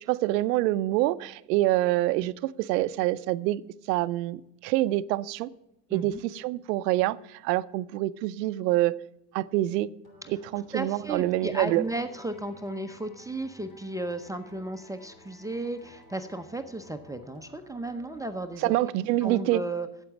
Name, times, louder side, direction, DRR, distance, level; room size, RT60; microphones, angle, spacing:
voice 1, 0.1-3.6 3.9-5.5 5.9-8.9 9.3-9.9 10.3-11.8 18.6-19.6, right 16 dB, 90° right, 0.6 m, -26 dB
voice 2, 5.9-6.2 10.7-18.7 19.2-19.9, right 2 dB, 5° right, 0.7 m, -34 dB
sound 1, 10.0-19.0, left 1 dB, 50° left, 4.1 m, -54 dB
8.5 x 8.2 x 7.1 m
supercardioid pair, 90°, 48 cm